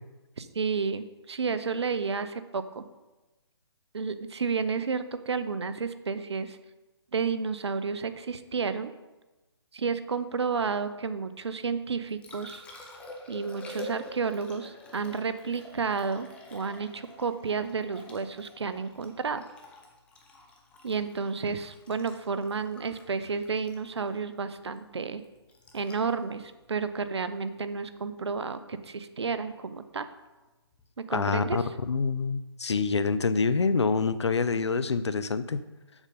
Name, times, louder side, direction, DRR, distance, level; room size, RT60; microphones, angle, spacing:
voice 1, 0.4-2.8 3.9-6.6 7.1-8.9 9.7-12.6 13.3-19.4 20.8-25.2 25.7-30.1 31.0-31.7, right 5 dB, 75° right, 11 dB, 0.8 m, -31 dB
Liquid, 11.8-27.9 30.7-30.8, left 1 dB, 10° left, 0.8 m, -48 dB
voice 2, 31.1-35.6, left 4 dB, 80° left, 13 dB, 0.6 m, -26 dB
7.2 x 6.7 x 5.1 m, 1.1 s
hypercardioid pair, 150°, 14 cm